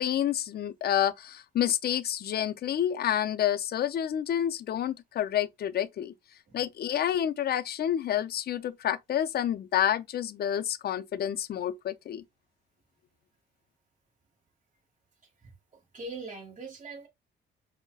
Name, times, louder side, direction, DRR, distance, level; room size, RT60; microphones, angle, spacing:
voice 1, 0.0-6.1 6.5-12.2, left 10 dB, 50° left, 0.4 m, -29 dB
voice 2, 15.4-17.1, right 3 dB, 40° right, 1.5 m, -42 dB
5.3 x 2.1 x 2.2 m
cardioid pair, 90°, 20 cm